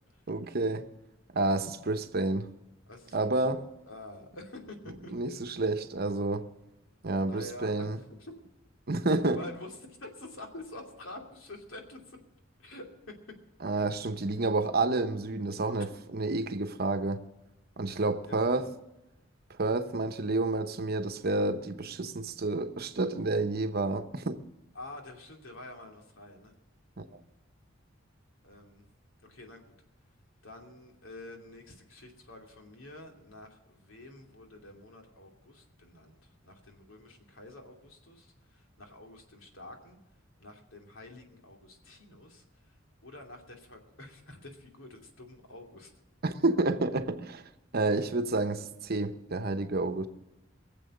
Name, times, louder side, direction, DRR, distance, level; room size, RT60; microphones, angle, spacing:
voice 1, 0.3-0.9 1.3-2.5 3.1-3.6 5.1-6.5 7.0-8.0 8.9-9.4 13.6-15.9 16.1-17.2 17.8-18.7 19.6-24.4 27.0-27.2 46.2-47.4 47.7-50.1, right 2 dB, 50° right, 0.9 m, -29 dB
voice 2, 2.9-5.1 7.2-8.4 9.2-12.2 12.6-12.9 18.3-18.7 24.7-26.5 28.4-28.8 29.3-29.7 30.4-40.0 40.4-42.7 43.0-45.9, left 1 dB, 80° left, 2.8 m, -48 dB
22.5 x 7.7 x 6.5 m
head